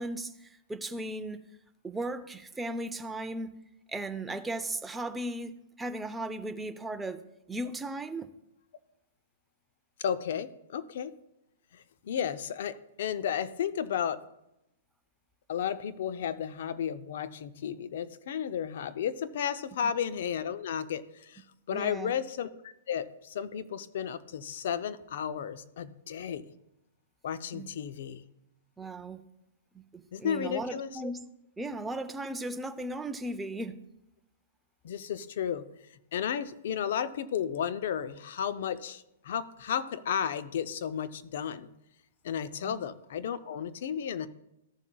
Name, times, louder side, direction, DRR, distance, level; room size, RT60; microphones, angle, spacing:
voice 1, 0.0-1.4 1.8-3.6 3.9-5.5 5.8-7.2 7.5-8.3 21.7-22.1 27.5-27.7 28.8-29.2 29.7-31.2 31.6-33.8 42.6-42.8, right 1 dB, 10° right, 0.6 m, -36 dB
voice 2, 10.0-11.1 11.7-14.2 15.5-26.5 27.2-28.2 30.1-31.0 34.8-35.7 36.1-41.7 42.2-44.3, left 8 dB, 65° left, 0.6 m, -33 dB
14.0 x 7.1 x 2.3 m
hypercardioid pair, 125°, 0 cm